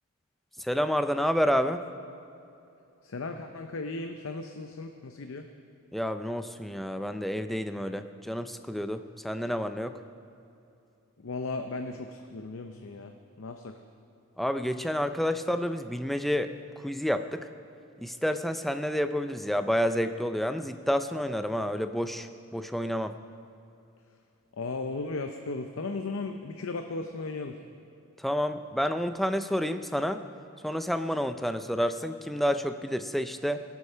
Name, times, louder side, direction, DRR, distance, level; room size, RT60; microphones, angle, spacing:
voice 1, 0.6-1.9 5.9-10.0 14.4-17.5 18.0-23.1 28.2-30.2 30.6-33.6, equal, ahead, 9 dB, 0.4 m, -29 dB
voice 2, 3.0-5.5 11.2-13.1 13.4-13.7 24.5-27.6, left 3 dB, 65° left, 6 dB, 0.6 m, -36 dB
17.5 x 8.3 x 5.6 m, 2.7 s
head